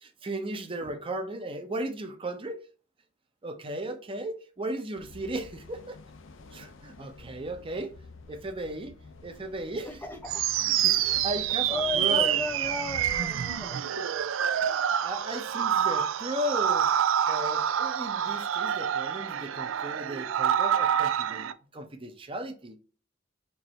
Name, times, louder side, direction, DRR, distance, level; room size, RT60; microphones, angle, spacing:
voice 1, 0.0-2.6 3.4-6.0 6.5-7.9 8.3-8.9 9.2-10.2 10.6-12.4 14.7-16.9 17.3-22.8, right 1 dB, 25° right, 0.7 m, -36 dB
sound 1, 4.9-13.6, left 3 dB, 75° left, 0.6 m, -50 dB
voice 2, 9.8-10.4 11.7-13.8, left 2 dB, 10° left, 0.6 m, -35 dB
sound 2, 10.3-21.5, right 9 dB, 90° right, 0.4 m, -27 dB
4.6 x 2.6 x 4.2 m
head